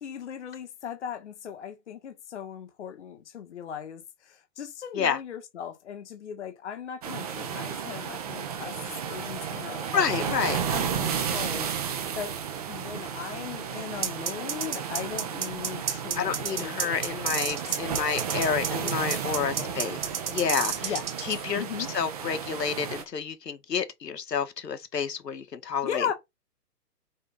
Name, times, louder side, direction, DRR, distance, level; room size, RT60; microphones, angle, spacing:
voice 1, 0.0-11.7 12.1-12.4 12.7-16.9 17.2-17.3 17.6-17.7 18.8-18.9 19.2-19.8 20.8-21.1 21.5-21.9 25.8-26.1, left 8 dB, 45° left, 1.6 m, -38 dB
sound 1, 7.0-23.0, right 8 dB, 25° right, 1.2 m, -33 dB
voice 2, 9.9-10.6 16.2-20.0 20.3-20.9 21.2-21.6 21.9-26.1, left 7 dB, 80° left, 2.1 m, -29 dB
sound 2, 14.0-21.3, right 8 dB, 45° right, 1.7 m, -30 dB
5.9 x 4.5 x 5.0 m
hypercardioid pair, 165°, 48 cm